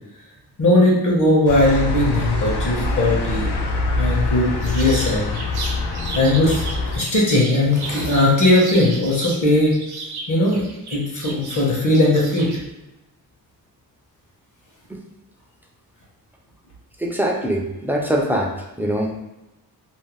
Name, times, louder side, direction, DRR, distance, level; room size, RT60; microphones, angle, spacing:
voice 1, 0.6-3.5 3.9-5.4 6.1-6.6 6.9-9.8 10.3-10.6 10.9-12.5, left 1 dB, 50° left, -3 dB, 0.9 m, -18 dB
sound 1, 1.5-7.0, left 2 dB, 85° left, 0.5 m, -24 dB
sound 2, 4.6-9.4 9.7-12.6, right 3 dB, 75° right, 0.6 m, -34 dB
voice 2, 17.0-19.1, right 1 dB, 5° right, 0 dB, 0.3 m, -23 dB
2.7 x 2.0 x 3.1 m, 0.98 s
wide cardioid pair, 110°, 39 cm